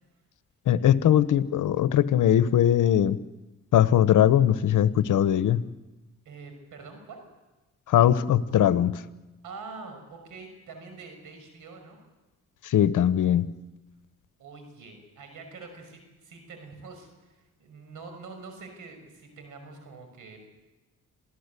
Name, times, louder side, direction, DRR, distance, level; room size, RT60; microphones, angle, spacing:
voice 1, 0.7-3.2 3.7-5.6 7.9-8.9 12.6-13.5, left 10 dB, 80° left, 14 dB, 1.0 m, -20 dB
voice 2, 6.2-7.2 9.4-12.0 14.4-20.5, right 4 dB, 85° right, 6 dB, 6.1 m, -45 dB
27.5 x 16.0 x 8.3 m, 1.1 s
cardioid pair, 70°, 31 cm